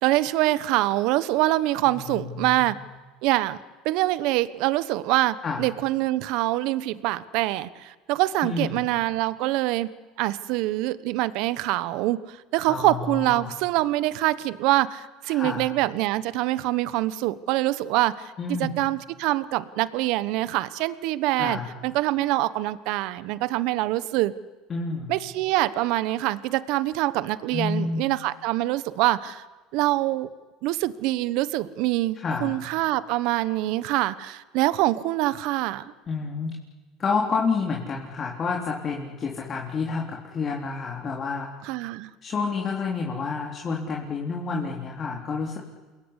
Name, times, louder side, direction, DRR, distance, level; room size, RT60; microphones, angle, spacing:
voice 1, 0.0-2.8 3.2-3.6 3.8-24.3 25.1-29.4 29.7-30.3 30.6-35.9 41.6-42.1, right 17 dB, 70° right, 16 dB, 1.2 m, -25 dB
voice 2, 1.8-2.8 5.4-5.6 8.4-8.8 12.7-13.5 15.3-15.7 18.4-18.8 21.4-21.7 24.7-25.1 27.5-28.0 32.2-32.5 36.1-36.5 37.0-41.5 42.2-45.6, left 4 dB, 35° left, -1 dB, 3.9 m, -29 dB
28.0 x 21.5 x 9.9 m, 1.3 s
supercardioid pair, 100°, 0 cm